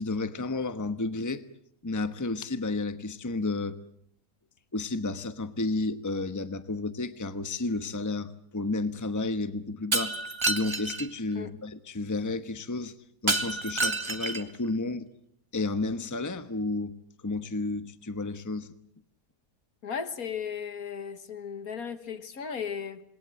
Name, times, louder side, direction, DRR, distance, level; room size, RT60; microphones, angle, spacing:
voice 1, 0.0-1.4 1.8-3.8 4.7-10.2 10.5-12.9 13.2-15.1 15.5-16.9 17.2-18.7, left 3 dB, 15° left, 1.1 m, -31 dB
Shatter, 9.9-11.1 13.3-14.6, right 2 dB, 20° right, 1.4 m, -29 dB
voice 2, 19.8-23.0, left 7 dB, 70° left, 1.9 m, -36 dB
27.5 x 21.5 x 7.8 m
omnidirectional pair, 1.6 m